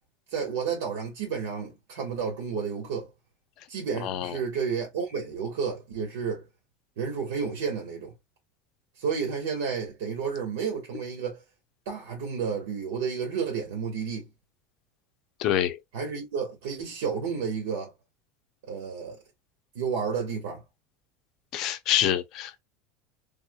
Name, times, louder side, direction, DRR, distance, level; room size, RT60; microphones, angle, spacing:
voice 1, 0.3-3.1 3.7-6.4 7.0-8.1 9.0-11.4 11.8-14.3 15.9-17.9 18.6-19.2 19.7-20.6, right 6 dB, 85° right, 1.5 m, -31 dB
voice 2, 4.0-4.3 15.4-15.8 21.5-22.6, left 11 dB, 40° left, 0.6 m, -26 dB
3.6 x 2.8 x 2.2 m
supercardioid pair, 170°, 0 cm